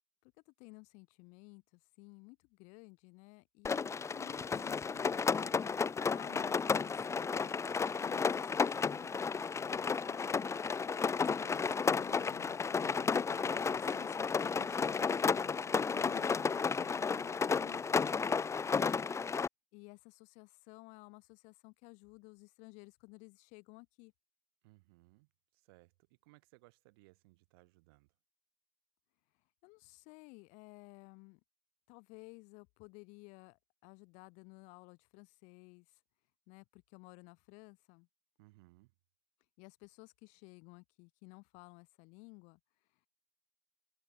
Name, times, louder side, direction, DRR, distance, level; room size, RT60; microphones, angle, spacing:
voice 1, 0.2-7.6 8.0-10.6 11.4-18.5 19.7-24.1 29.6-31.4 31.9-35.9 36.5-38.1 39.6-42.6, left 30 dB, 80° left, 3.5 m, -56 dB
Rain, 3.6-19.5, left 5 dB, 25° left, 0.8 m, -33 dB
voice 2, 24.6-28.1 38.4-38.9, right 24 dB, 90° right, 5.3 m, -64 dB
open air
supercardioid pair, 100°, 12 cm